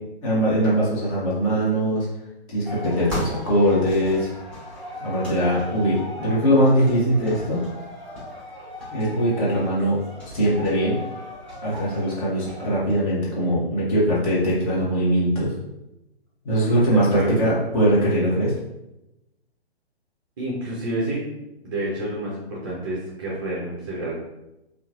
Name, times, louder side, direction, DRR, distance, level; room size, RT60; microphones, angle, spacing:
voice 1, 0.2-2.1 2.5-4.3 5.0-7.6 8.9-11.0 11.6-15.5 16.4-18.5, equal, 30° left, -7 dB, 1.0 m, -21 dB
sound 1, 2.6-12.7, left 1 dB, 5° left, 0.9 m, -36 dB
voice 2, 16.9-17.4 20.4-21.3 21.6-24.1, right 1 dB, 20° right, -6 dB, 0.5 m, -28 dB
2.8 x 2.4 x 2.4 m, 0.92 s
figure-of-eight pair, 130°, 33 cm